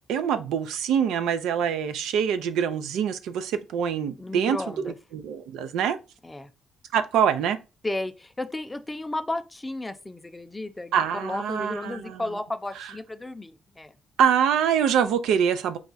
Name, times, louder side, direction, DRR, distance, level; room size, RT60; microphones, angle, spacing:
voice 1, 0.1-6.0 6.9-7.6 10.9-12.2 14.2-15.8, right 8 dB, 85° right, 0.5 m, -25 dB
voice 2, 4.2-5.0 6.2-6.5 7.8-13.9, left 2 dB, 15° left, 0.5 m, -33 dB
4.7 x 2.3 x 4.0 m
cardioid pair, 90°, 0 cm